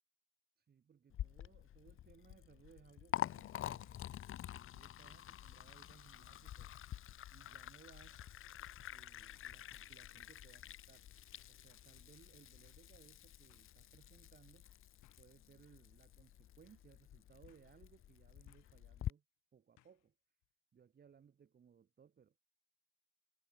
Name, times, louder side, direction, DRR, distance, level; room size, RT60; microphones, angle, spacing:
voice 1, 0.6-3.9 4.5-6.7 7.3-8.2 8.9-11.1 11.5-14.7 15.2-19.2 19.5-20.1 20.7-22.4, right 7 dB, 35° right, 0.7 m, -65 dB
Liquid, 1.1-19.1, left 12 dB, 45° left, 0.4 m, -48 dB
table bang, 3.8-4.1 4.6-4.7 5.7-5.9 7.4-7.8 8.7-9.0 9.3-10.1 11.7-12.0 13.0-13.1 13.5-13.7 15.0-15.4 15.9-16.1 16.4-16.5 17.5-17.8 18.5-18.9 19.8-20.1 20.4-20.5, left 16 dB, 80° left, 0.9 m, -72 dB
cardioid pair, 90°, 30 cm